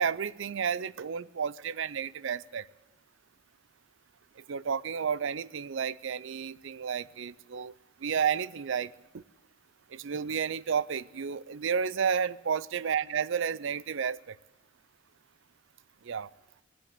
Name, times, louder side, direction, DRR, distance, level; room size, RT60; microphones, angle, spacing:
voice 1, 0.0-2.7 4.5-7.7 8.0-9.2 9.9-14.4 16.0-16.3, right 7 dB, 60° right, 19 dB, 0.4 m, -31 dB
17.5 x 7.7 x 9.5 m, 1.1 s
head